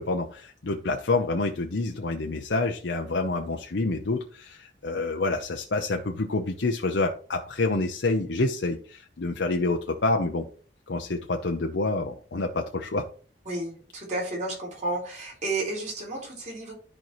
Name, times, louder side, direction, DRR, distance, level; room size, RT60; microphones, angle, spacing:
voice 1, 0.0-10.5 10.9-13.1, left 3 dB, 80° left, 3 dB, 0.7 m, -27 dB
voice 2, 13.5-16.7, right 2 dB, 45° right, -2 dB, 3.8 m, -32 dB
13.0 x 4.5 x 3.1 m, 0.42 s
head